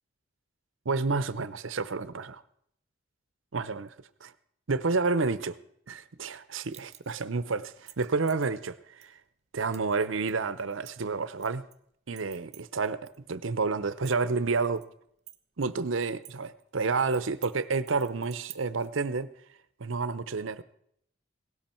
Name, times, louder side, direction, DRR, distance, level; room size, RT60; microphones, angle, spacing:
voice 1, 0.9-2.4 3.5-3.9 4.2-4.3 4.7-5.5 5.9-9.2 9.5-11.6 12.1-14.8 15.6-19.3 19.8-20.6, right 4 dB, 70° right, 0.8 m, -30 dB
sound 1, 6.7-7.3 7.7-8.5 9.0-9.1 9.7-10.0 10.3-11.8 12.2-13.2 13.4-13.5 13.9-14.9 15.3-16.3 16.6-16.7 17.1-17.5 17.9-18.9, right 13 dB, 35° right, 1.3 m, -49 dB
17.5 x 13.0 x 4.4 m
head